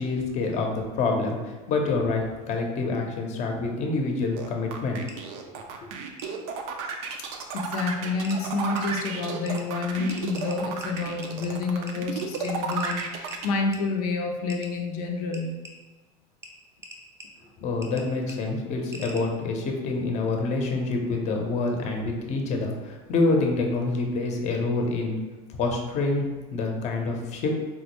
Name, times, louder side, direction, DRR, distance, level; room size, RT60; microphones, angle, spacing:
voice 1, 0.0-5.0 17.6-25.2 25.6-27.5, left 3 dB, 40° left, 2 dB, 0.6 m, -27 dB
sound 1, 4.4-13.5, right 5 dB, 70° right, 0.5 m, -33 dB
sound 2, 5.1-5.2 6.2-6.3 7.7-7.8 8.2-8.4 8.8-8.9 9.5-9.6 10.1-11.5 11.9-12.0 12.2-13.4 13.7-13.8 14.5-14.7 15.3-15.7 16.4-16.5 16.8-17.3 17.8-18.0 18.3-18.4 18.9-19.2, right 1 dB, 15° right, 0.5 m, -42 dB
voice 2, 7.5-15.6, left 3 dB, 85° left, 1 dB, 0.4 m, -29 dB
3.6 x 2.1 x 3.0 m, 1.2 s
supercardioid pair, 115°, 19 cm